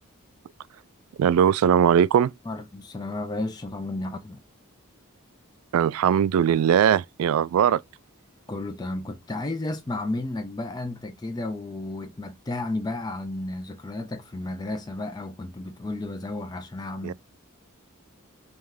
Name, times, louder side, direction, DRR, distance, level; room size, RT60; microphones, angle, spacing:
voice 1, 1.2-2.3 5.7-7.8 17.0-17.1, right 8 dB, 80° right, 0.3 m, -20 dB
voice 2, 2.5-4.4 6.5-6.6 8.5-17.1, left 2 dB, 20° left, 0.4 m, -33 dB
3.5 x 3.2 x 3.4 m
head